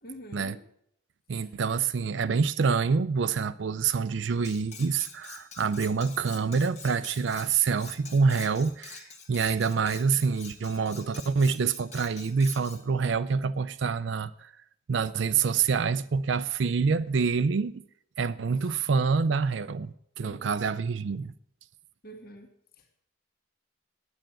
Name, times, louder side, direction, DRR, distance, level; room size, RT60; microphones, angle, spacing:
voice 1, 0.0-0.6 1.3-1.5 18.7-18.8 20.2-20.6 22.0-22.5 22.8-22.9, right 1 dB, 50° left, 1.6 m, -46 dB
voice 2, 1.3-14.5 14.9-17.8 18.2-19.9 20.2-21.3, right 5 dB, 70° right, 0.4 m, -26 dB
Cutlery silverware, 4.4-12.8, left 5 dB, 35° left, 1.4 m, -46 dB
9.1 x 8.8 x 7.6 m
head